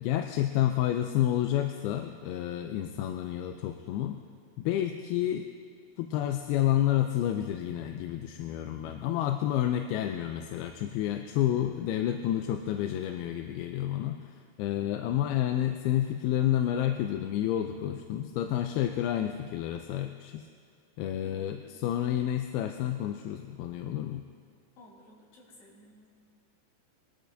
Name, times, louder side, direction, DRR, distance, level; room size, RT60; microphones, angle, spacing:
voice 1, 0.0-4.2 4.6-5.5 6.0-20.4 21.0-24.2, left 12 dB, 90° left, 6 dB, 2.5 m, -30 dB
voice 2, 8.8-9.2 14.8-15.1 21.2-22.4 24.8-26.1, left 1 dB, 70° left, -6 dB, 4.3 m, -55 dB
21.0 x 12.5 x 2.7 m, 2.1 s
omnidirectional pair, 4.3 m